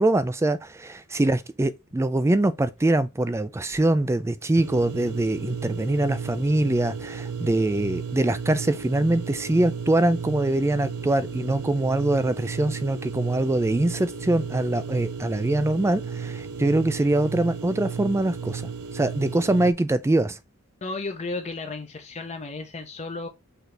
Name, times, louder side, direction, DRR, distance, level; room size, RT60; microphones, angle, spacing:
voice 1, 0.0-18.6 18.9-20.4, right 2 dB, 10° right, 0.3 m, -23 dB
sound 1, 4.5-19.7, right 6 dB, 80° right, 0.5 m, -34 dB
voice 2, 20.8-23.3, left 3 dB, 30° left, 0.6 m, -33 dB
6.0 x 2.7 x 3.2 m
head